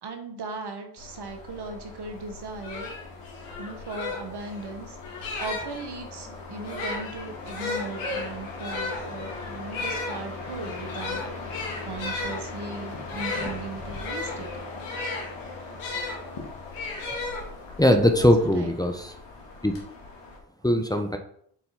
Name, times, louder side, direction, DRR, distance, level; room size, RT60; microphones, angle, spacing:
voice 1, 0.0-2.9 3.6-5.0 5.4-11.2 11.5-14.5 18.2-19.0 20.0-20.4, right 3 dB, 60° right, 5 dB, 1.4 m, -38 dB
sound 1, 1.0-20.4, left 3 dB, 70° left, 2.2 m, -40 dB
sound 2, 2.2-2.3 2.6-5.9 6.6-16.2 16.7-17.8, left 3 dB, 90° left, 1.7 m, -34 dB
voice 2, 17.8-19.1 19.6-19.7 20.6-21.2, left 1 dB, 10° left, 5 dB, 1.0 m, -20 dB
7.1 x 4.3 x 4.2 m, 0.65 s
supercardioid pair, 45°, 46 cm